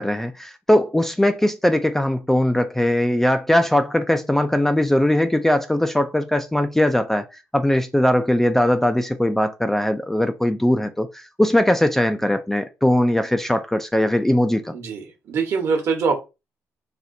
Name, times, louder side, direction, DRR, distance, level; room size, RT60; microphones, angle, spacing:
voice 1, 0.0-7.3 7.5-14.7, left 1 dB, 5° left, 0.3 m, -20 dB
voice 2, 14.7-16.2, right 5 dB, 55° right, 1.1 m, -23 dB
4.2 x 2.4 x 2.6 m
cardioid pair, 120°, 6 cm